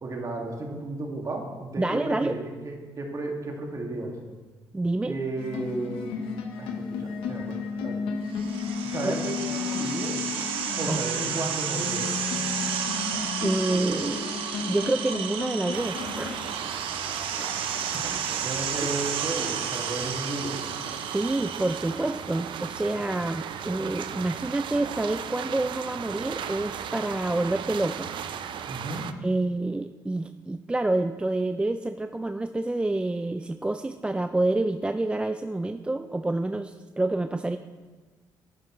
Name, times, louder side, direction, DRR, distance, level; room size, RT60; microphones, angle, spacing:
voice 1, 0.0-4.2 5.0-6.2 6.6-7.6 7.8-8.0 8.8-10.2 10.8-12.1 18.4-20.6 28.6-29.0, right 2 dB, 40° right, 1 dB, 2.0 m, -33 dB
voice 2, 1.8-2.4 4.7-5.1 9.0-9.1 10.9-11.0 13.4-14.3 14.7-16.4 17.4-17.5 18.8-18.9 21.0-28.1 29.2-37.6, right 2 dB, 10° right, 8 dB, 0.4 m, -28 dB
sound 1, 5.4-16.5, left 5 dB, 90° left, 1.0 m, -33 dB
sound 2, 8.3-22.1, right 8 dB, 85° right, 0.9 m, -32 dB
sound 3, 15.7-29.1, right 8 dB, 65° right, 0.5 m, -36 dB
10.5 x 9.6 x 3.1 m, 1.3 s
cardioid pair, 85°, 9 cm